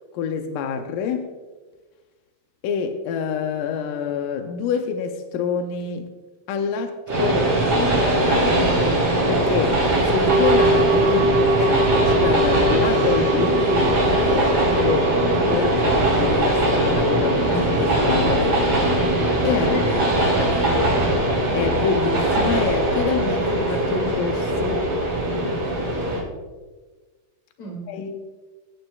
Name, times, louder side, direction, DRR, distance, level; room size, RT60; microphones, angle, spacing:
voice 1, 0.1-1.3 2.6-6.1 6.5-7.5 8.2-8.8 9.3-15.2 15.5-18.6 19.4-19.8 21.5-24.9 27.9-28.1, left 6 dB, 85° left, 1.9 m, -26 dB
Train, 7.1-26.2, right 1 dB, 40° right, 4.0 m, -20 dB
sound 1, 10.3-20.6 20.8-20.9, right 2 dB, 85° right, 2.6 m, -25 dB
voice 2, 19.6-21.3 27.6-28.0, left 1 dB, 45° left, 3.4 m, -32 dB
22.0 x 9.2 x 2.4 m
omnidirectional pair, 4.6 m